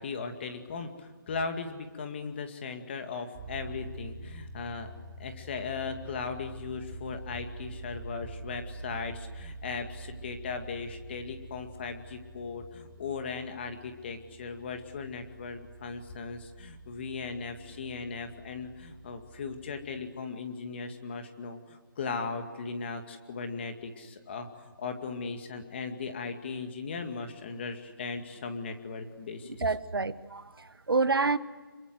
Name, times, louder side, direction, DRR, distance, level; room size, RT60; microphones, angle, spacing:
voice 1, 0.0-4.9 5.2-29.6, left 4 dB, 30° left, 2.2 m, -38 dB
sound 1, 3.3-20.1, right 2 dB, 15° right, 2.6 m, -46 dB
voice 2, 29.6-31.4, right 4 dB, 80° right, 1.3 m, -28 dB
27.5 x 23.5 x 8.0 m
figure-of-eight pair, 165°, 12 cm